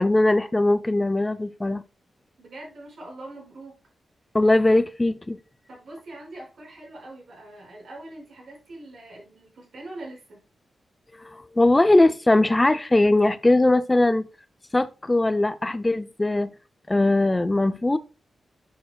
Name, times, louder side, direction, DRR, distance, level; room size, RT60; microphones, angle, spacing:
voice 1, 0.0-1.8 4.3-5.4 11.1-14.3 14.7-16.5 16.9-18.0, left 2 dB, 15° left, 0.4 m, -20 dB
voice 2, 2.4-3.8 5.7-10.4, right 2 dB, 65° right, 5.0 m, -42 dB
10.5 x 7.1 x 2.2 m
wide cardioid pair, 125°, 0 cm